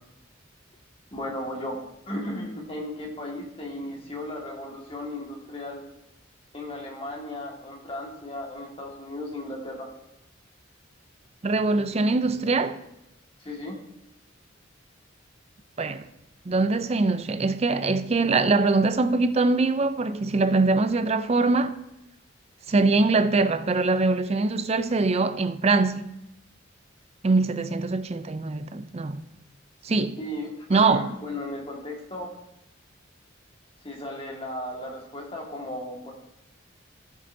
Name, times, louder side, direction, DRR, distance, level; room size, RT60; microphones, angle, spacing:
voice 1, 1.1-5.8 6.5-9.9 13.4-13.8 30.2-32.3 33.8-36.1, left 1 dB, 25° left, 1.8 m, -35 dB
voice 2, 11.4-12.8 15.8-16.1 16.5-21.8 22.7-26.1 27.2-29.2 29.8-30.2 30.7-31.1, right 3 dB, 30° right, 0.5 m, -23 dB
15.0 x 7.5 x 2.7 m
head